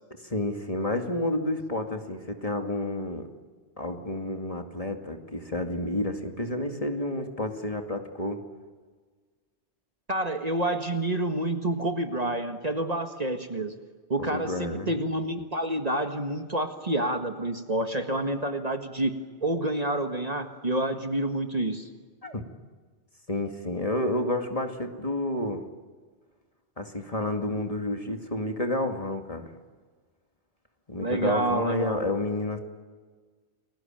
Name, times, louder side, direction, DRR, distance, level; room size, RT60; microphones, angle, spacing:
voice 1, 0.2-3.3 3.8-8.4 14.2-14.9 22.2-22.4 23.3-25.6 26.8-29.5 30.9-32.6, left 1 dB, 35° left, 4 dB, 2.4 m, -30 dB
voice 2, 10.1-13.8 14.1-21.9 31.0-32.1, right 1 dB, 35° right, 6 dB, 1.8 m, -28 dB
30.0 x 21.0 x 9.0 m, 1.5 s
omnidirectional pair, 1.1 m